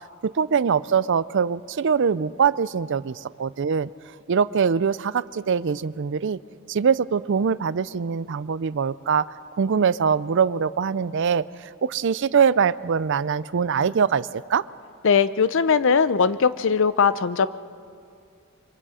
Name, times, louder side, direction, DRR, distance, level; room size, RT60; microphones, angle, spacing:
voice 1, 0.2-3.9 4.3-6.4 6.7-11.4 11.8-14.6, right 6 dB, 55° right, 17 dB, 0.4 m, -23 dB
voice 2, 15.0-17.5, left 6 dB, 60° left, 14 dB, 0.6 m, -20 dB
26.5 x 24.5 x 5.0 m, 2.4 s
head